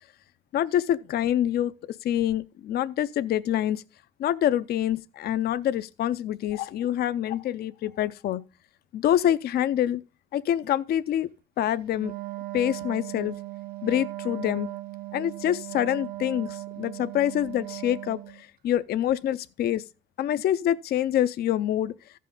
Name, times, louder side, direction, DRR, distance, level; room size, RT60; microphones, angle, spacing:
voice 1, 0.5-3.8 4.2-8.4 8.9-10.0 10.3-11.3 11.6-12.1 12.5-13.4 13.8-14.7 15.1-19.8 20.2-21.9, left 11 dB, 55° left, 0.5 m, -26 dB
Wind instrument woodwind instrument, 11.9-18.4, right 18 dB, 50° right, 0.8 m, -38 dB
14.5 x 5.6 x 3.7 m
cardioid pair, 105°, 20 cm